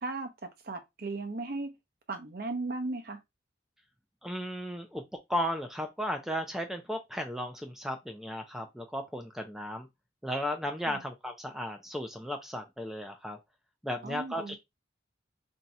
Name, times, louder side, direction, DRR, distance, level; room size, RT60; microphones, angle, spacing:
voice 1, 0.0-1.7 2.1-3.2 10.9-11.0 14.0-14.6, right 3 dB, 50° right, 0.6 m, -36 dB
voice 2, 4.2-5.0 5.3-9.9 10.2-13.4 13.8-14.6, equal, ahead, 0.4 m, -35 dB
2.7 x 2.3 x 4.1 m
head